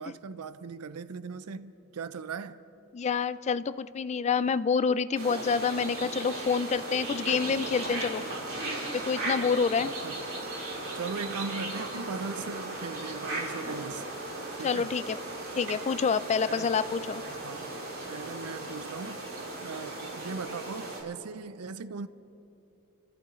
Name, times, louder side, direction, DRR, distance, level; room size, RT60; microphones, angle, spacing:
voice 1, 0.0-2.6 9.8-10.2 10.9-14.1 14.5-15.0 16.5-16.7 17.3-17.7 18.1-19.2 19.6-22.1, right 5 dB, 85° right, 0.5 m, -39 dB
voice 2, 2.9-8.2 8.9-9.9 14.6-15.2 15.6-17.2, left 5 dB, 30° left, 0.3 m, -27 dB
sound 1, 5.2-21.0, right 2 dB, 65° right, 4.2 m, -37 dB
29.5 x 14.0 x 3.1 m
head